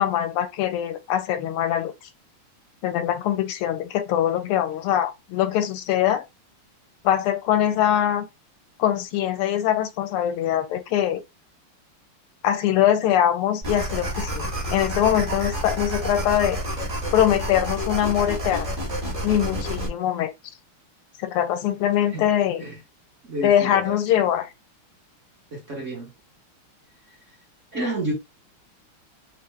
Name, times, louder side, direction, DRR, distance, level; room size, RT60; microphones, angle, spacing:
voice 1, 0.0-1.9 2.8-6.2 7.0-8.3 8.8-11.2 12.4-16.6 17.1-18.7 19.2-20.3 21.2-22.6 23.4-24.5, left 11 dB, 90° left, 1.5 m, -22 dB
sound 1, 13.6-19.9, equal, 20° right, 1.2 m, -29 dB
voice 2, 23.2-23.8 25.5-26.1 27.7-28.1, right 1 dB, 45° right, 1.1 m, -30 dB
3.6 x 2.4 x 3.2 m
omnidirectional pair, 2.4 m